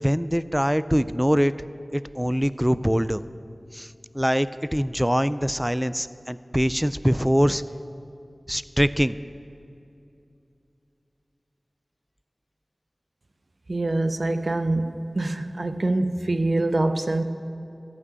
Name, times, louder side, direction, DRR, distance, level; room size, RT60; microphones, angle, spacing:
voice 1, 0.0-1.5 1.9-3.2 3.7-3.9 4.1-7.6 8.5-9.2, equal, 5° right, 15 dB, 0.3 m, -23 dB
voice 2, 13.7-17.2, right 2 dB, 60° right, 9 dB, 0.6 m, -25 dB
13.5 x 6.1 x 8.7 m, 2.7 s
wide cardioid pair, 60°, 0 cm